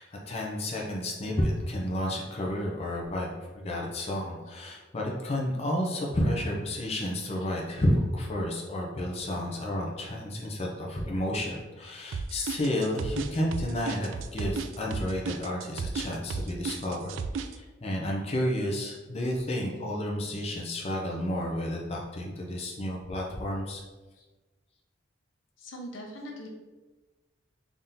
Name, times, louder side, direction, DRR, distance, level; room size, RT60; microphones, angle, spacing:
voice 1, 0.0-3.3 3.5-23.8, left 1 dB, 35° left, -1 dB, 0.6 m, -31 dB
sound 1, 12.1-17.5, right 5 dB, 80° right, 0.3 m, -33 dB
voice 2, 25.6-26.5, equal, 85° left, 1 dB, 0.8 m, -42 dB
3.6 x 2.8 x 3.8 m, 1.2 s
head